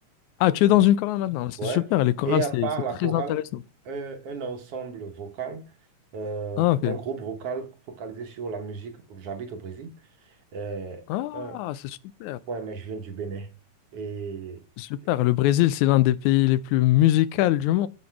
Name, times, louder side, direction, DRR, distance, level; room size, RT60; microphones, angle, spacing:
voice 1, 0.4-2.7 3.0-3.4 6.6-7.0 11.1-12.4 14.8-17.9, left 14 dB, 85° left, 2.0 m, -22 dB
voice 2, 1.6-1.9 2.2-3.4 3.9-5.6 6.1-9.9 10.2-11.0 11.3-11.6 12.5-13.5 13.9-14.6, right 5 dB, 60° right, 1.8 m, -33 dB
7.8 x 7.0 x 4.6 m
omnidirectional pair, 3.4 m